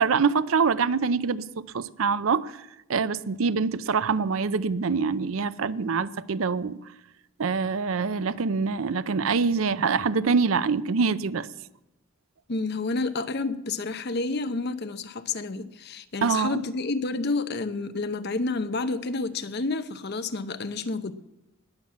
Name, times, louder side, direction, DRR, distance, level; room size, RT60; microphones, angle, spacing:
voice 1, 0.0-1.4 1.7-2.5 2.9-6.8 7.4-11.5 16.2-16.6, right 5 dB, 75° right, 0.6 m, -25 dB
voice 2, 12.5-21.1, left 3 dB, 50° left, 0.8 m, -29 dB
19.5 x 7.3 x 7.4 m
head